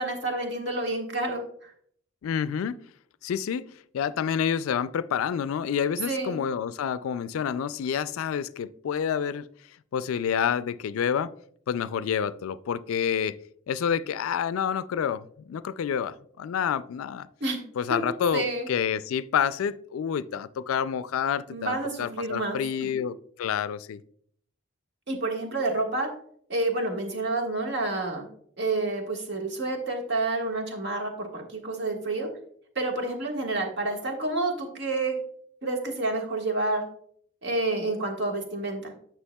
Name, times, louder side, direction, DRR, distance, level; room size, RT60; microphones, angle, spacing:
voice 1, 0.0-1.7 6.1-6.4 17.4-17.6 17.9-18.0 18.3-18.7 21.5-22.9 25.1-26.1 26.5-28.3 28.6-32.3 32.7-35.2 35.6-36.8 37.4-38.9, right 2 dB, 55° right, 1.5 m, -29 dB
voice 2, 2.2-2.8 3.2-9.5 9.9-11.3 11.7-13.4 13.7-17.3 17.8-24.0, left 8 dB, 90° left, 0.3 m, -28 dB
9.7 x 6.0 x 2.2 m
head